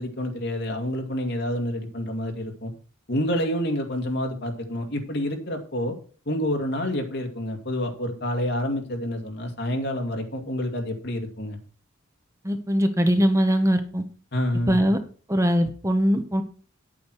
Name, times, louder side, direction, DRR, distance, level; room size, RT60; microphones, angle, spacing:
voice 1, 0.0-2.7 3.1-5.9 6.3-11.6 14.3-14.8, left 1 dB, 55° left, 4 dB, 2.3 m, -28 dB
voice 2, 12.4-14.0 14.7-15.0 15.3-16.4, equal, 15° right, 7 dB, 0.9 m, -21 dB
9.7 x 8.7 x 4.7 m, 0.39 s
head